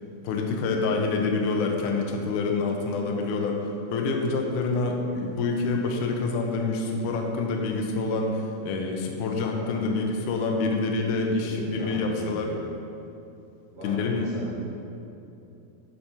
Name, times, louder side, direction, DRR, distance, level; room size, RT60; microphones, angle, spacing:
voice 1, 0.2-12.5 13.8-14.3, left 3 dB, 85° left, 2 dB, 1.7 m, -27 dB
voice 2, 9.6-9.9 11.3-12.6 13.7-14.6, right 1 dB, 50° right, -12 dB, 1.3 m, -36 dB
8.6 x 5.9 x 2.8 m, 2.8 s
omnidirectional pair, 4.4 m